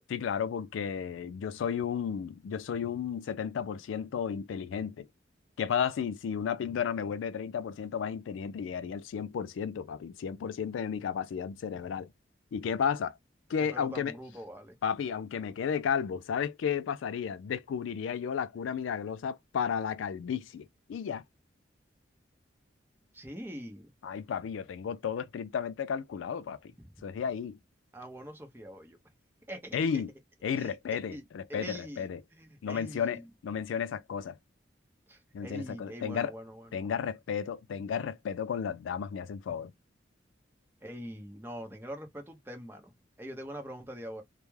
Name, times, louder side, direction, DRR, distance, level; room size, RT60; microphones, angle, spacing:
voice 1, 0.1-5.1 5.6-12.1 12.5-13.2 13.5-14.2 14.8-21.2 24.0-26.7 27.0-27.6 29.7-30.1 30.4-32.2 32.6-34.4 35.3-36.3 36.7-39.7, left 7 dB, 85° left, 0.3 m, -33 dB
voice 2, 13.7-14.7 23.1-23.9 26.8-26.9 27.9-29.0 29.5-30.0 30.5-31.2 31.5-32.1 32.3-33.2 35.1-36.9 40.8-42.9 43.2-44.2, equal, 10° right, 0.6 m, -43 dB
2.3 x 2.0 x 3.0 m
head